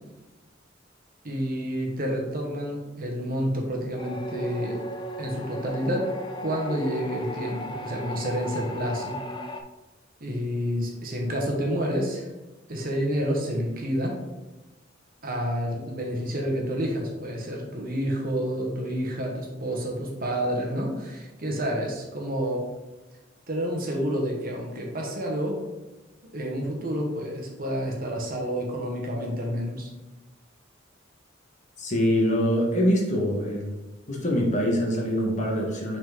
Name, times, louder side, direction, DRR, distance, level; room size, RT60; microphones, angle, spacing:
voice 1, 1.2-4.8 5.2-6.1 6.4-9.2 10.2-12.3 12.7-14.2 15.2-22.7 23.5-25.6 26.3-29.9, equal, 50° right, 0 dB, 1.2 m, -29 dB
sound 1, 4.0-9.6, equal, 25° left, 0.4 m, -35 dB
voice 2, 31.8-33.7 34.1-36.0, equal, 40° left, -1 dB, 1.3 m, -24 dB
6.1 x 4.2 x 3.7 m, 1.1 s
head